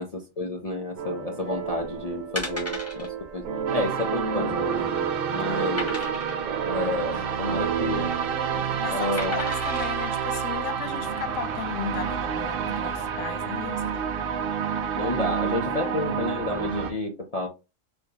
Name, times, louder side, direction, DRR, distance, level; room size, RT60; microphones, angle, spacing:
voice 1, 0.0-3.5 3.7-6.0 6.7-8.1 8.9-9.4 14.9-17.5, left 2 dB, 50° left, 0.4 m, -30 dB
sound 1, 1.0-10.0, right 7 dB, 85° right, 1.1 m, -32 dB
sound 2, 1.9-2.0 2.4-3.1 3.4-3.6 3.8-3.9 4.5-5.0 5.8-6.5 7.8-8.2 9.2-9.9 10.5-10.6, left 1 dB, 10° left, 1.2 m, -35 dB
sound 3, 3.7-16.9, right 7 dB, 60° right, 0.6 m, -29 dB
voice 2, 8.5-14.2 15.8-16.2, left 8 dB, 80° left, 0.9 m, -36 dB
3.5 x 2.5 x 2.7 m
omnidirectional pair, 1.4 m